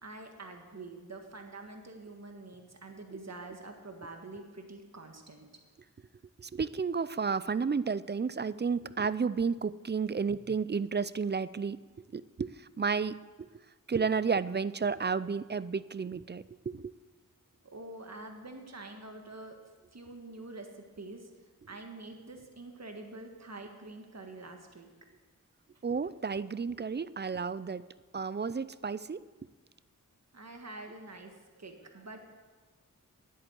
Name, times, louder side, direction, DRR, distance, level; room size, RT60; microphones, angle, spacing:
voice 1, 0.0-5.5 17.6-19.6 19.9-21.3 21.7-24.9 30.3-32.2, right 2 dB, 50° right, 4 dB, 1.7 m, -46 dB
voice 2, 6.4-11.8 12.1-13.5 13.9-16.9 25.8-27.9 28.1-29.2, right 5 dB, 30° right, 17 dB, 0.4 m, -32 dB
10.0 x 9.0 x 8.1 m, 1.3 s
cardioid pair, 45°, 34 cm